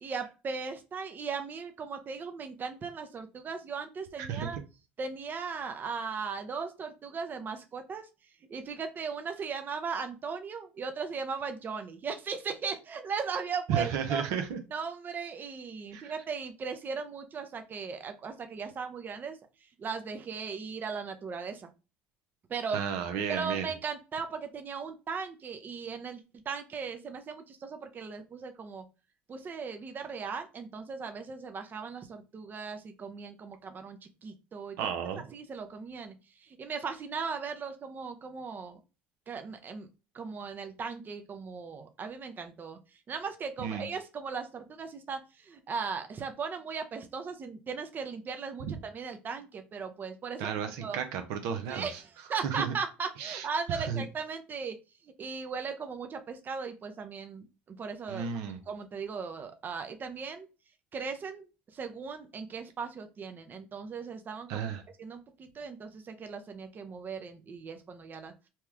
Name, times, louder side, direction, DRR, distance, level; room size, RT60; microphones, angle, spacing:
voice 1, 0.0-4.6 5.0-8.1 8.5-14.2 14.7-19.4 19.8-21.7 22.5-22.8 23.3-28.8 29.3-34.8 35.3-36.1 36.4-38.8 39.3-39.9 40.1-42.8 43.1-50.5 50.8-51.0 51.7-54.8 55.2-58.3 58.7-60.5 60.9-61.5 61.7-64.6 65.0-68.3, right 5 dB, 35° right, 0.6 m, -37 dB
voice 2, 4.2-4.6 13.7-14.6 15.9-16.1 22.7-23.7 34.8-35.2 43.6-43.9 50.4-52.0 52.3-52.8 53.2-54.0 58.1-58.6 64.5-64.8, right 7 dB, 75° right, 0.6 m, -33 dB
2.8 x 2.3 x 3.3 m
supercardioid pair, 80°, 5 cm